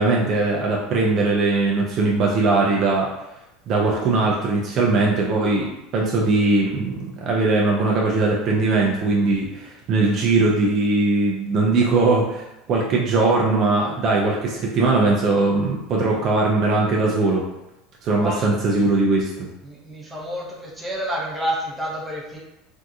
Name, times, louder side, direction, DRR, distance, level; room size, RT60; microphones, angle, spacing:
voice 1, 0.0-3.1 3.7-5.7 5.9-17.5 18.0-19.5, right 3 dB, 45° right, -2 dB, 0.5 m, -20 dB
voice 2, 18.2-18.9 19.6-22.4, equal, 10° right, -4 dB, 0.8 m, -29 dB
3.5 x 2.7 x 2.4 m, 0.90 s
supercardioid pair, 125°, 0 cm